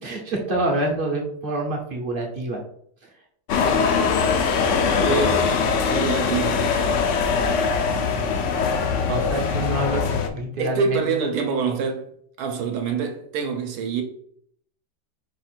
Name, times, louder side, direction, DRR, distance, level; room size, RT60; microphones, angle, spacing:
voice 1, 0.0-2.6 9.1-11.1, right 1 dB, 45° right, 0.7 m, -26 dB
sound 1, 3.5-10.3, left 5 dB, 70° left, 0.7 m, -22 dB
voice 2, 5.0-5.5 5.9-6.7 10.6-12.1 12.4-14.0, right 5 dB, 75° right, 1.1 m, -25 dB
5.0 x 2.4 x 4.3 m
omnidirectional pair, 1.8 m